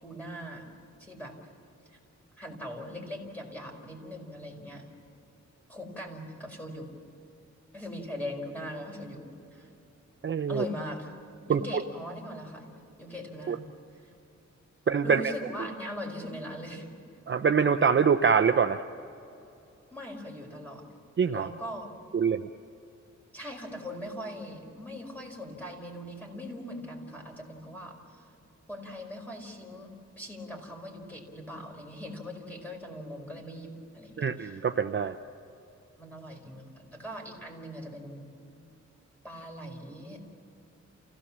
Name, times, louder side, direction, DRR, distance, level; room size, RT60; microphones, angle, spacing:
voice 1, 0.0-0.7 1.0-1.3 1.9-2.0 2.4-4.9 5.7-6.9 7.7-9.2 9.5-9.7 10.5-11.1 11.5-13.6 14.0-14.1 15.0-16.9 19.9-20.9 21.3-21.9 23.3-28.2 28.7-29.9 30.2-34.6 36.0-38.3 39.2-40.2, left 1 dB, 5° left, 0 dB, 5.1 m, -40 dB
voice 2, 10.2-10.6 11.5-11.6 13.5-13.6 14.9-15.2 17.3-18.8 21.2-21.5 22.1-22.5 34.2-35.1, right 6 dB, 40° right, 7 dB, 0.7 m, -24 dB
29.5 x 17.0 x 7.4 m, 2.7 s
wide cardioid pair, 125°, 29 cm